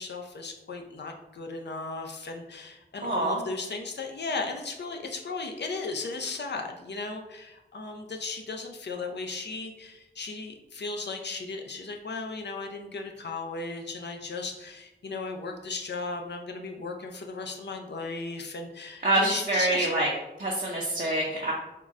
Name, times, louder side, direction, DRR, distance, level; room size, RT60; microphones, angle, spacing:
voice 1, 0.0-19.9, left 3 dB, 70° left, 3 dB, 0.5 m, -36 dB
voice 2, 3.0-3.4 19.0-20.1 20.4-21.5, right 1 dB, 50° right, -3 dB, 0.5 m, -26 dB
3.7 x 2.1 x 3.6 m, 0.97 s
wide cardioid pair, 70°, 18 cm